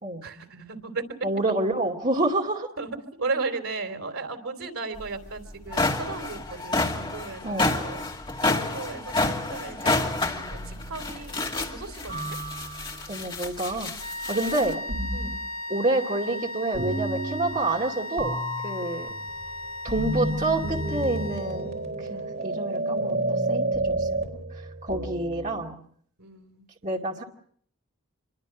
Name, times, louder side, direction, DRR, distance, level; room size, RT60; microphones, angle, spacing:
voice 1, 0.2-1.3 2.8-2.9 3.2-8.0 8.4-12.4 14.3-14.7 15.1-15.4 24.9-25.0 26.2-26.7, right 3 dB, 80° right, 7 dB, 3.5 m, -35 dB
voice 2, 1.2-2.7 7.4-7.7 13.1-13.9 14.3-14.8 15.7-18.4 18.6-19.1 19.8-21.7 22.0-24.1 24.5-25.8 26.8-27.2, right 2 dB, 35° right, -1 dB, 2.4 m, -28 dB
sound 1, 5.0-5.1 5.5-14.7, left 2 dB, 25° left, 2.5 m, -29 dB
sound 2, 10.5-11.3 12.1-13.2 14.9-15.5 16.7-17.9 18.2-25.6, right 2 dB, 50° right, 4.1 m, -31 dB
sound 3, 14.0-21.9, left 1 dB, 80° left, 2.0 m, -37 dB
27.0 x 22.5 x 6.2 m, 0.62 s
head